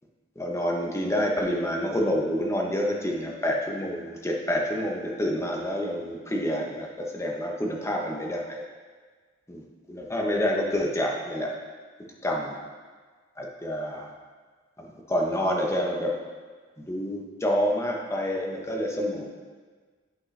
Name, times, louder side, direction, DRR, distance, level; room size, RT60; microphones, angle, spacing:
voice 1, 0.4-8.6 9.5-11.5 12.2-12.6 13.4-14.1 14.8-16.1 16.8-19.2, equal, 15° left, 0 dB, 0.8 m, -28 dB
8.6 x 5.2 x 3.3 m, 1.5 s
head